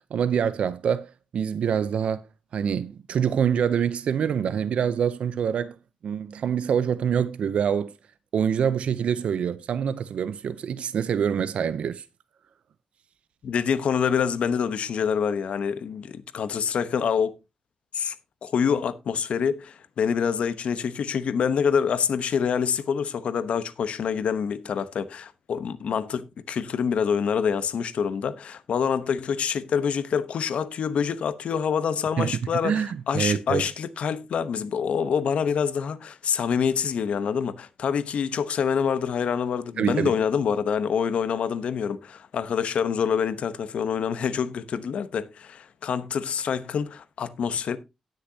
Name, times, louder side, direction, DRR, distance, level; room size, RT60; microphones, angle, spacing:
voice 1, 0.1-2.3 2.5-5.8 6.0-7.9 8.3-12.0 32.2-33.7 39.8-40.2, right 8 dB, 85° right, 0.6 m, -25 dB
voice 2, 13.4-17.3 17.9-18.1 18.4-47.8, left 7 dB, 85° left, 0.9 m, -26 dB
17.5 x 6.6 x 2.8 m
wide cardioid pair, 135°, 2 cm